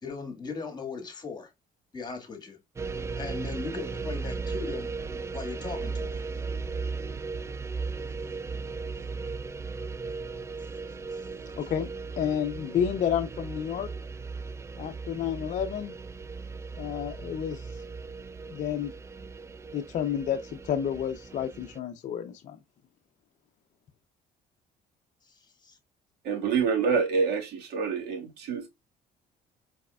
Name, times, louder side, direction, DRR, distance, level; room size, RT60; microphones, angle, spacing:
voice 1, 0.0-1.5 1.9-2.6 2.8-4.9 5.3-6.3 11.1-11.3 25.2-25.8, left 4 dB, 25° left, 2.0 m, -39 dB
sound 1, 2.8-21.8, right 4 dB, 15° right, 0.3 m, -37 dB
voice 2, 11.6-11.9 12.2-13.9 14.8-15.9 16.7-17.8 18.5-18.9 19.7-22.6, left 9 dB, 50° left, 0.5 m, -30 dB
voice 3, 26.2-28.7, right 5 dB, 70° right, 1.8 m, -27 dB
4.7 x 4.2 x 2.3 m
cardioid pair, 110°, 17 cm